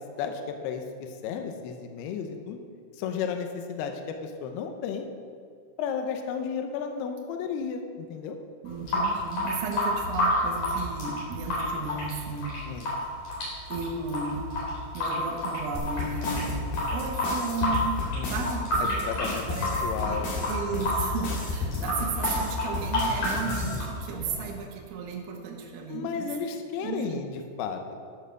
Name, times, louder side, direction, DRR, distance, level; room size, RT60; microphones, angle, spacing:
voice 1, 0.1-2.6 2.9-5.1 5.8-8.4 12.7-12.9 18.1-18.5 18.8-20.6 22.4-22.5 25.9-27.3 27.6-27.8, left 6 dB, 85° left, 5 dB, 2.3 m, -33 dB
Water tap faucet / Sink (filling or washing) / Drip, 8.6-24.6, left 1 dB, 45° left, 4.7 m, -30 dB
voice 2, 8.6-12.9 13.7-14.5 14.9-19.8 20.0-26.3 26.8-27.3, right 5 dB, 85° right, 0 dB, 3.9 m, -34 dB
sound 1, 15.8-23.8, left 3 dB, 60° left, 3.4 m, -32 dB
12.0 x 6.6 x 6.3 m, 2.1 s
omnidirectional pair, 5.8 m